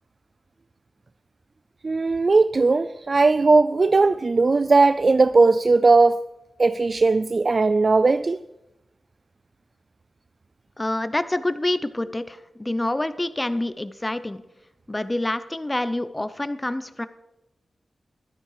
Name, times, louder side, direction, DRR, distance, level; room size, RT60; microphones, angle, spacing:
voice 1, 1.8-6.2 6.6-8.4, right 3 dB, 45° right, 0.4 m, -18 dB
voice 2, 10.8-14.4 14.9-17.1, left 1 dB, 15° left, 0.7 m, -27 dB
15.0 x 12.5 x 5.0 m
wide cardioid pair, 110°, 0 cm